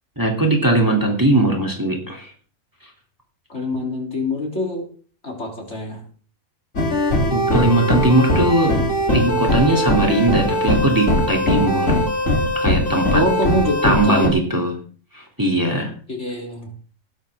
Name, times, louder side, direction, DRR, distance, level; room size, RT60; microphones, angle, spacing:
voice 1, 0.2-2.3 7.3-8.8 9.1-12.0 12.5-13.2 13.8-14.8 15.1-15.9, right 1 dB, 15° right, 1 dB, 3.0 m, -19 dB
voice 2, 3.5-4.9 5.2-6.0 13.1-14.4 16.1-16.7, left 1 dB, 50° left, 0 dB, 3.8 m, -24 dB
sound 1, 6.8-14.3, left 1 dB, 70° left, 3.7 m, -20 dB
18.0 x 12.5 x 3.7 m, 0.43 s
omnidirectional pair, 1.5 m